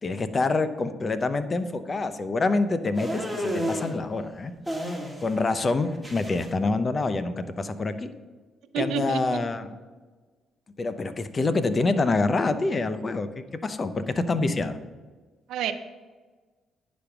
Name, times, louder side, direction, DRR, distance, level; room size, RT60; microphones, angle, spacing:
voice 1, 0.0-4.5 5.2-8.1 8.8-9.7 10.8-14.8, left 3 dB, 35° left, 11 dB, 0.7 m, -26 dB
sound 1, 3.0-3.9 4.7-5.4 5.7-6.5, equal, 5° right, 1.7 m, -31 dB
voice 2, 8.7-9.4 15.5-15.7, right 8 dB, 85° right, 10 dB, 0.6 m, -29 dB
9.8 x 5.2 x 5.9 m, 1.4 s
cardioid pair, 90°, 0 cm